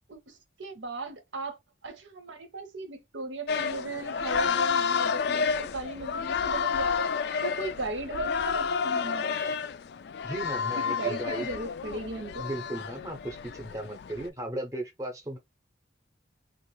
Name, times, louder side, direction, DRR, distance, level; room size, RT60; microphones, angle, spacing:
voice 1, 0.1-7.1 7.4-9.5 10.8-12.5, right 3 dB, 90° right, 0.9 m, -37 dB
sound 1, 3.5-14.3, left 6 dB, 60° left, 0.3 m, -30 dB
voice 2, 10.2-11.5 12.4-15.4, right 1 dB, 15° right, 0.7 m, -36 dB
3.0 x 2.5 x 3.0 m
head